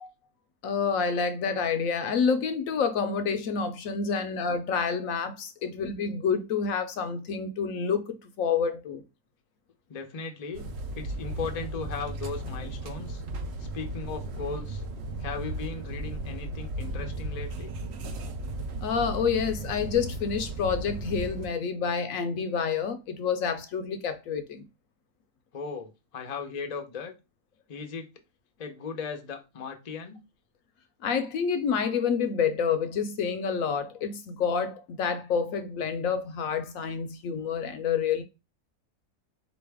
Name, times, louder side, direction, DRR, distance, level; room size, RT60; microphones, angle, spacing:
voice 1, 0.6-9.0 18.8-24.6 31.0-38.2, left 6 dB, 70° left, 0.9 m, -28 dB
voice 2, 9.9-10.6 11.0-13.2 13.6-14.8 15.2-17.7 25.5-27.1 27.7-28.1 28.6-30.2, left 5 dB, 45° left, 0.5 m, -37 dB
sound 1, 10.5-21.5, right 1 dB, 60° right, 0.7 m, -35 dB
4.1 x 3.0 x 3.4 m
omnidirectional pair, 1.6 m